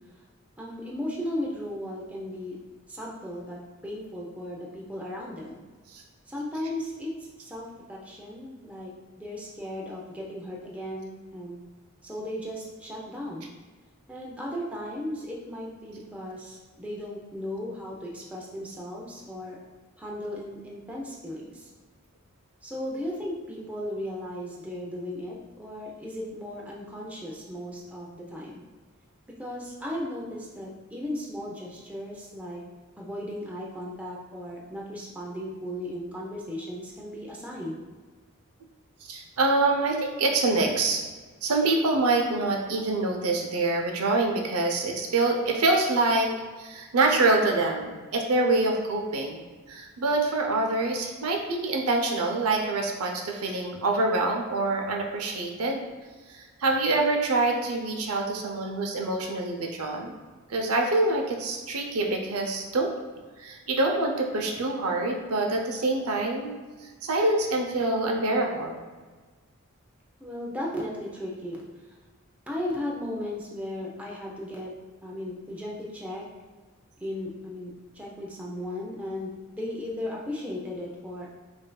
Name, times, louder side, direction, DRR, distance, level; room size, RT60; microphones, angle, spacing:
voice 1, 0.6-2.6 2.9-5.6 6.3-7.1 7.4-8.9 9.2-11.6 12.0-13.5 14.1-19.6 20.0-21.7 22.6-28.6 29.4-32.6 33.0-37.8 70.2-71.6 72.5-74.7 75.0-76.2 77.0-81.3, left 1 dB, 5° right, -3 dB, 0.5 m, -36 dB
voice 2, 39.0-41.1 41.4-46.3 46.6-55.9 56.3-60.1 60.5-62.9 63.4-68.8, right 2 dB, 90° right, 2 dB, 0.6 m, -26 dB
5.2 x 2.6 x 2.2 m, 1.4 s
head